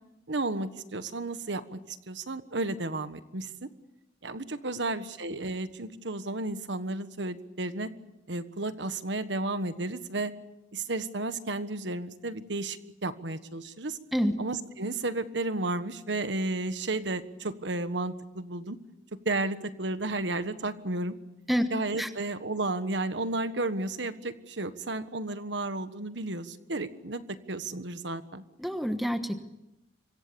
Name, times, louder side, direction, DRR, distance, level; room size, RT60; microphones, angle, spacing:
voice 1, 0.3-3.7 4.2-7.9 8.3-10.3 10.7-14.0 14.4-18.8 19.2-21.1 21.7-28.4, right 2 dB, 70° right, 11 dB, 1.5 m, -33 dB
voice 2, 28.6-29.4, equal, ahead, 7 dB, 1.3 m, -27 dB
26.5 x 23.5 x 7.0 m, 0.95 s
head